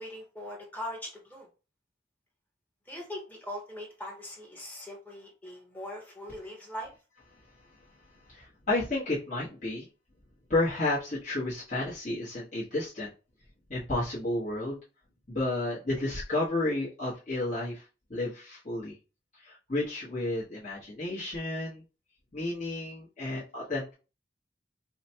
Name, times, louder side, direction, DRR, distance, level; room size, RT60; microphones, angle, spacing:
voice 1, 0.0-1.5 2.9-6.9, left 1 dB, 10° left, -1 dB, 1.0 m, -41 dB
voice 2, 8.3-9.9 10.5-13.1 13.7-14.8 15.3-18.9 19.4-21.8 22.3-23.9, left 2 dB, 40° left, -9 dB, 1.2 m, -32 dB
4.9 x 2.1 x 2.8 m, 0.33 s
head